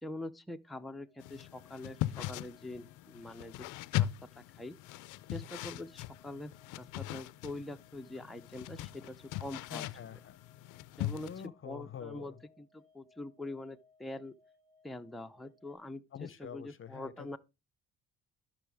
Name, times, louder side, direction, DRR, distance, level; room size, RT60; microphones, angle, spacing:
voice 1, 0.0-3.7 4.0-4.8 5.3-9.9 11.0-14.4 14.8-17.4, left 2 dB, ahead, 0.6 m, -44 dB
sound 1, 1.0-15.7, left 3 dB, 35° right, 5.8 m, -68 dB
sound 2, 1.2-11.5, left 14 dB, 85° left, 0.5 m, -40 dB
voice 2, 9.7-10.4 11.2-12.4 16.1-17.4, left 8 dB, 45° left, 0.7 m, -46 dB
12.0 x 6.1 x 3.4 m
cardioid pair, 90°, 30 cm